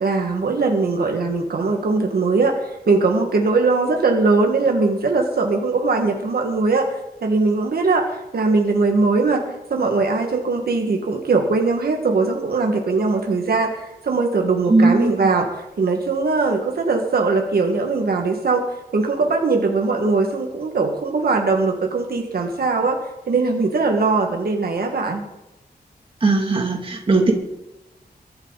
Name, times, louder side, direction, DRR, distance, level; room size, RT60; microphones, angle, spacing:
voice 1, 0.0-9.4 9.7-15.5 15.8-18.6 18.9-23.0 23.3-25.2, right 3 dB, 70° right, 2 dB, 2.0 m, -20 dB
voice 2, 14.7-15.1 26.2-27.3, right 3 dB, 35° right, 1 dB, 2.8 m, -17 dB
23.0 x 12.0 x 4.2 m, 0.96 s
wide cardioid pair, 180°, 16 cm